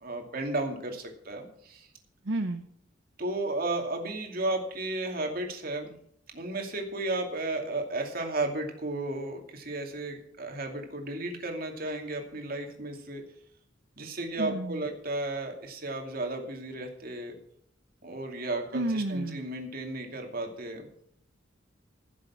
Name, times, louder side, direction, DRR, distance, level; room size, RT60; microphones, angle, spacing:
voice 1, 0.0-1.9 3.2-5.9 6.3-13.2 14.0-17.4 18.0-20.9, right 2 dB, 50° right, 3 dB, 2.6 m, -34 dB
voice 2, 2.2-2.6 14.4-14.8 18.7-19.5, right 2 dB, 70° right, 7 dB, 0.8 m, -31 dB
15.5 x 7.4 x 5.8 m, 0.66 s
head